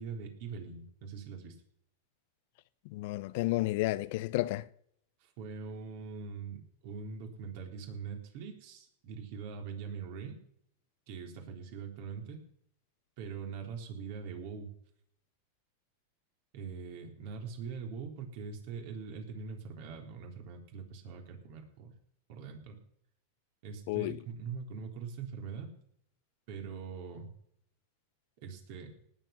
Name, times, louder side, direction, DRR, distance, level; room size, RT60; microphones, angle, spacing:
voice 1, 0.0-1.6 5.2-10.4 11.1-12.4 13.2-14.7 16.5-21.9 22.3-22.8 23.6-25.7 26.5-27.3 28.4-28.9, right 5 dB, 60° right, 3.9 m, -42 dB
voice 2, 2.9-4.6 23.9-24.2, left 18 dB, 60° left, 0.6 m, -31 dB
18.5 x 8.0 x 5.9 m
hypercardioid pair, 120°, 0 cm